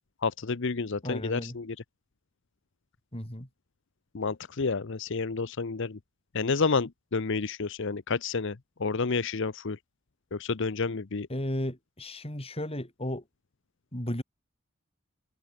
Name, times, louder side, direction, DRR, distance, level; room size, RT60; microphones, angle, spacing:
voice 1, 0.2-1.8 4.1-6.0 6.3-9.8 10.3-11.3, left 4 dB, 65° left, 0.8 m, -30 dB
voice 2, 1.0-1.6 3.1-3.5 11.3-13.2 13.9-14.2, left 1 dB, 30° left, 5.6 m, -34 dB
head